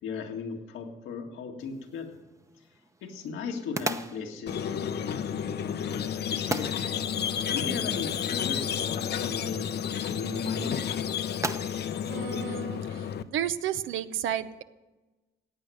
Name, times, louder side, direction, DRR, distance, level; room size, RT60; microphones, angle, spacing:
voice 1, 0.0-2.2 3.0-6.8 7.5-10.9, left 5 dB, 90° left, 2 dB, 2.0 m, -37 dB
sound 1, 1.6-13.3, right 2 dB, 15° right, 0.8 m, -41 dB
Squeak, 4.5-13.2, left 8 dB, 55° left, 0.7 m, -31 dB
voice 2, 12.1-13.0 13.3-14.6, right 10 dB, 80° right, 12 dB, 0.8 m, -32 dB
16.0 x 9.1 x 7.8 m, 1.1 s
cardioid pair, 90°, 20 cm